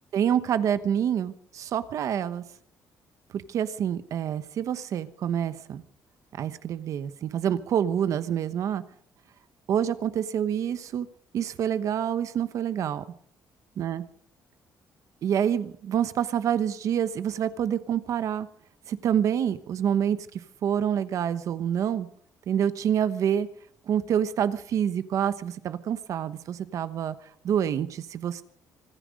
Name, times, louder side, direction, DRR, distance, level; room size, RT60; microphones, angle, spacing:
voice 1, 0.1-2.4 3.3-5.8 6.4-8.8 9.7-11.1 11.3-13.0 13.8-14.0 15.2-18.5 18.9-22.1 22.5-23.5 23.9-27.1 27.4-28.4, right 9 dB, 55° right, 13 dB, 1.0 m, -27 dB
25.0 x 10.0 x 5.3 m, 0.62 s
cardioid pair, 170°, 7 cm